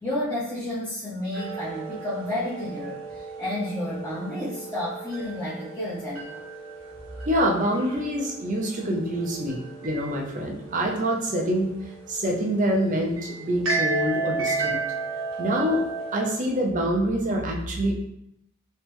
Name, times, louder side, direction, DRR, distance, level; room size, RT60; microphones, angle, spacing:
voice 1, 0.0-6.4, left 1 dB, 10° left, -12 dB, 0.8 m, -31 dB
sound 1, 1.3-16.4, right 3 dB, 65° right, 0.9 m, -34 dB
voice 2, 7.3-11.7 12.1-14.8 15.4-15.8 16.1-18.0, equal, 40° right, 0 dB, 0.6 m, -25 dB
3.2 x 3.1 x 3.4 m, 0.77 s
head